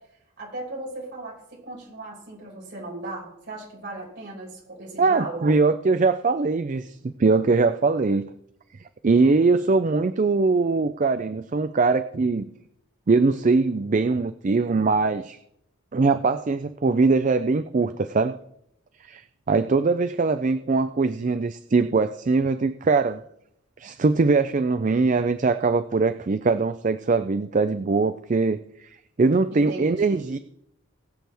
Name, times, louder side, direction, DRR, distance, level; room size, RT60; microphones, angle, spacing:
voice 1, 0.4-5.5 29.5-30.2, right 2 dB, 55° right, -4 dB, 5.6 m, -37 dB
voice 2, 5.0-8.3 9.0-12.5 13.1-15.4 15.9-18.4 19.1-23.2 23.8-28.9 29.2-30.4, right 3 dB, 35° right, 12 dB, 0.4 m, -22 dB
21.0 x 7.8 x 3.5 m, 0.75 s
head